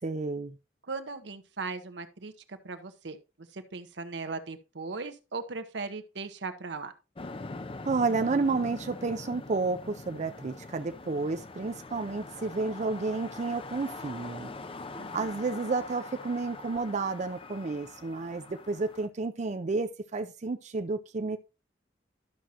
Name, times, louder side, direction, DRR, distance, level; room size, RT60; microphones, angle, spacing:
voice 1, 0.0-0.5 7.8-14.5 15.1-21.4, right 3 dB, 40° right, 0.5 m, -31 dB
voice 2, 0.9-6.9 14.9-15.5, right 4 dB, 80° right, 1.0 m, -38 dB
sound 1, 7.1-19.1, left 3 dB, 30° left, 0.6 m, -43 dB
12.0 x 6.2 x 2.9 m
head